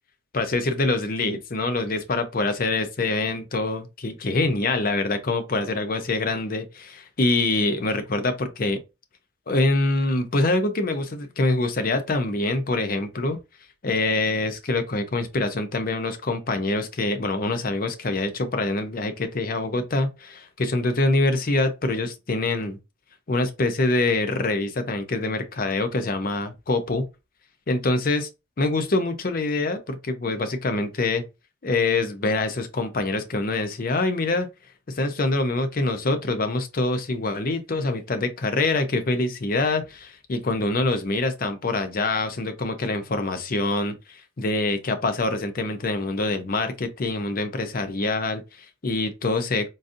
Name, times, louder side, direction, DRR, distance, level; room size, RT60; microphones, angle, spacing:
voice 1, 0.3-8.8 9.5-13.4 13.8-22.8 23.3-27.0 27.7-28.3 28.6-31.2 31.6-34.5 34.9-49.7, left 2 dB, 45° left, 0.5 m, -25 dB
3.9 x 2.5 x 2.6 m
head